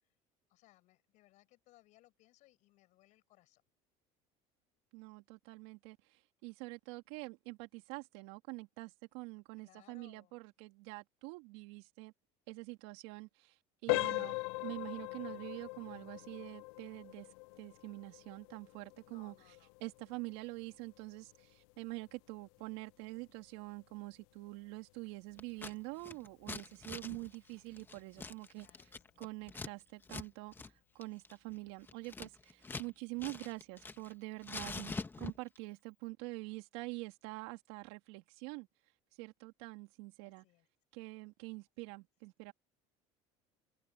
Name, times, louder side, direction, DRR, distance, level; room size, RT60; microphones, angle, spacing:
voice 1, 0.5-3.6 9.6-10.4 13.9-14.4 19.1-19.7 20.4-20.6 28.6-29.2 40.2-40.7, left 18 dB, 60° left, 7.9 m, -66 dB
voice 2, 4.9-12.1 12.5-17.3 17.6-19.3 19.8-28.7 29.2-38.7 39.2-40.4 40.9-42.5, right 24 dB, 85° right, 3.3 m, -46 dB
sound 1, 13.9-24.5 24.9-25.1 25.7-25.8 26.3-26.5, left 26 dB, 85° left, 0.4 m, -42 dB
Scissors, 25.4-25.7 26.0-29.7 30.0-30.3 30.5-30.7 31.0-32.9 33.2-34.1 34.4-35.6, left 3 dB, 15° left, 1.7 m, -45 dB
cardioid pair, 130°, 14 cm